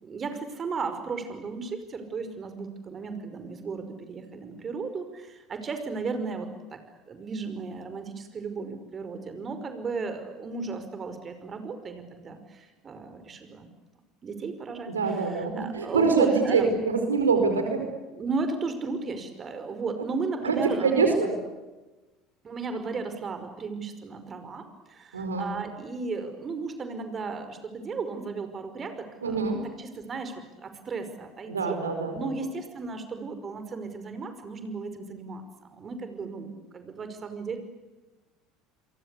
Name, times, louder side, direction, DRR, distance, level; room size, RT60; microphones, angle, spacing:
voice 1, 0.0-6.8 7.1-13.7 14.2-16.7 17.7-21.1 22.4-29.4 29.8-31.8 32.1-37.6, right 4 dB, 35° right, 8 dB, 5.4 m, -35 dB
voice 2, 14.9-17.8 20.0-20.1 20.4-21.3 25.1-25.5 29.2-29.6 31.5-32.3, right 4 dB, 85° right, 6 dB, 4.7 m, -25 dB
30.0 x 23.5 x 8.5 m, 1.1 s
hypercardioid pair, 70°, 0 cm